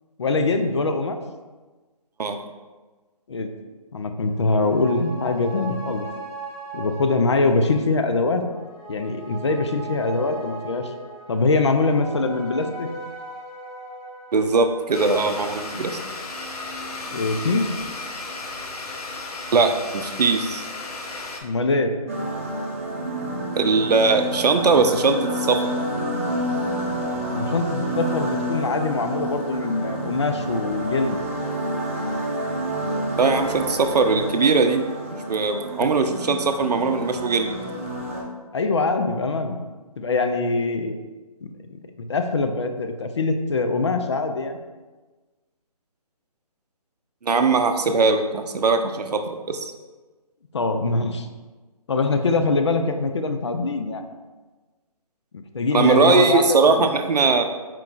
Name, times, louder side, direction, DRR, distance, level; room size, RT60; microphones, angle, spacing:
voice 1, 0.2-1.2 3.3-3.5 3.9-6.1 6.7-8.5 8.9-10.9 11.3-12.9 17.1-17.7 21.4-22.0 27.3-31.2 35.8-35.9 38.5-39.6 40.0-41.0 41.4-44.6 50.5-51.3 51.9-54.0 55.3-56.9, left 3 dB, 45° left, 6 dB, 0.4 m, -23 dB
sound 1, 4.1-17.0 17.3-17.4, right 2 dB, 5° left, 1.1 m, -39 dB
voice 2, 14.3-16.0 19.5-20.6 23.6-25.6 33.2-34.8 35.3-37.5 47.2-49.6 55.7-57.4, right 4 dB, 85° right, 7 dB, 0.5 m, -20 dB
Domestic sounds home sounds, 14.9-21.4, left 3 dB, 70° left, 0.7 m, -34 dB
sound 2, 22.1-38.2, right 1 dB, 20° right, 0.4 m, -29 dB
4.5 x 2.4 x 3.7 m, 1.3 s
hypercardioid pair, 165°, 20 cm